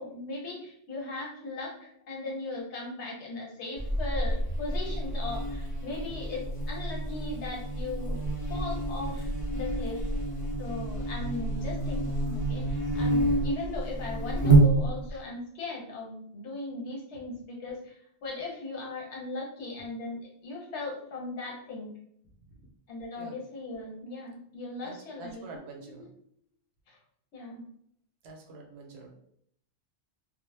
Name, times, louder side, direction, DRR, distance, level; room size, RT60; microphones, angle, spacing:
voice 1, 0.0-10.1 10.6-17.9 18.2-21.9 22.9-25.6 25.9-26.1 26.9-27.0 27.3-27.6, left 2 dB, 85° left, -2 dB, 1.0 m, -38 dB
Buzz, 3.8-15.2, right 2 dB, 25° left, 0.7 m, -28 dB
voice 2, 24.8-26.1 28.2-29.2, right 3 dB, 70° right, 1 dB, 0.8 m, -47 dB
2.0 x 2.0 x 3.1 m, 0.70 s
omnidirectional pair, 1.1 m